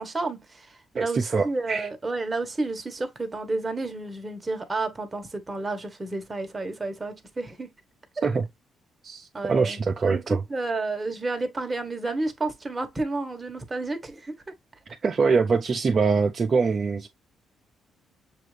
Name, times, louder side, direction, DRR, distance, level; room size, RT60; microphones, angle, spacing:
voice 1, 0.0-7.7 8.2-8.3 9.3-10.2 10.5-14.4, right 3 dB, 20° right, 1.1 m, -31 dB
voice 2, 0.9-1.9 8.2-8.5 9.0-10.4 15.0-17.1, right 5 dB, 45° right, 0.6 m, -24 dB
6.7 x 2.5 x 3.1 m
cardioid pair, 90°, 0 cm